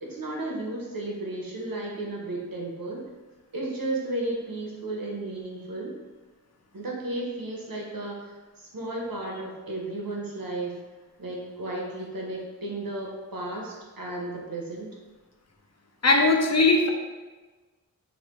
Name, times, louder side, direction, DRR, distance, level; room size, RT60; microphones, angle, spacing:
voice 1, 0.0-3.1 3.5-6.0 6.7-10.8 11.2-14.9, right 2 dB, 75° right, -2 dB, 0.9 m, -34 dB
voice 2, 16.0-16.9, left 3 dB, 50° left, 2 dB, 0.6 m, -19 dB
3.2 x 2.5 x 4.4 m, 1.3 s
wide cardioid pair, 40°, 35 cm